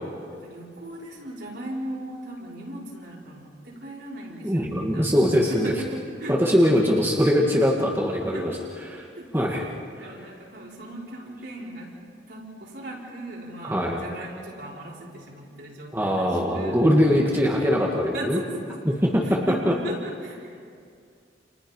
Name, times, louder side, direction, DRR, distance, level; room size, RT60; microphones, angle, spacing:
voice 1, 0.3-5.1 5.5-6.4 8.3-8.6 9.2-9.7 9.9-16.9 18.1-20.6, right 1 dB, 60° right, -4 dB, 5.5 m, -38 dB
voice 2, 4.4-5.7 6.3-8.6 8.9-9.0 9.3-9.6 10.0-10.1 13.6-14.0 15.9-18.4 18.9-19.4 19.7-19.8, equal, 10° right, -2 dB, 1.9 m, -22 dB
29.5 x 29.0 x 5.5 m, 2.3 s
head